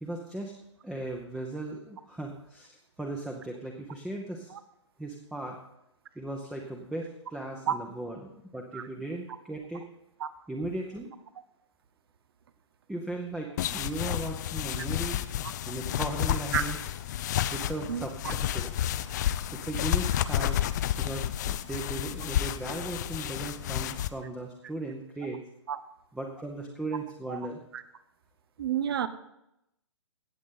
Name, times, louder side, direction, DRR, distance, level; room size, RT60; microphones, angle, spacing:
voice 1, 0.0-0.5 0.8-2.7 3.0-4.5 5.0-5.6 6.2-9.8 10.5-11.1 12.9-15.2 15.7-16.9 17.5-18.7 19.5-20.6 21.0-25.4 26.1-27.6, right 2 dB, 5° right, 1 dB, 0.9 m, -37 dB
sound 1, 13.6-24.1, left 11 dB, 35° left, 0.5 m, -31 dB
voice 2, 17.9-18.3 25.7-25.8 27.3-27.4 27.7-27.8 28.6-29.1, right 9 dB, 50° right, 14 dB, 0.8 m, -30 dB
17.0 x 7.5 x 3.8 m, 0.82 s
figure-of-eight pair, 120°, 16 cm